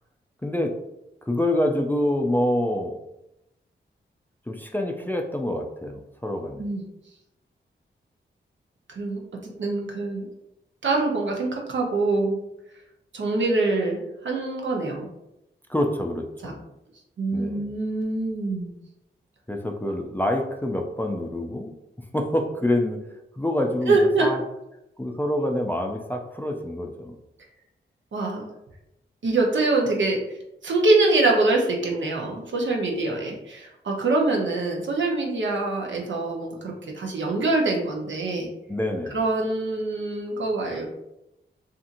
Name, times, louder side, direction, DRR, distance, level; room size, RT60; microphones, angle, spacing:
voice 1, 0.4-0.7 1.2-2.9 4.5-6.7 15.7-16.6 17.3-17.8 19.5-23.1 23.3-24.4 25.0-27.2 38.7-39.2, left 1 dB, 10° left, 2 dB, 0.4 m, -26 dB
voice 2, 9.6-10.3 10.8-12.4 13.1-15.1 16.4-16.5 17.2-18.7 23.9-24.3 28.1-28.5 29.2-30.4 30.6-38.5 39.1-40.9, right 2 dB, 65° right, 0 dB, 0.7 m, -24 dB
2.7 x 2.5 x 2.5 m, 0.88 s
cardioid pair, 45°, 20 cm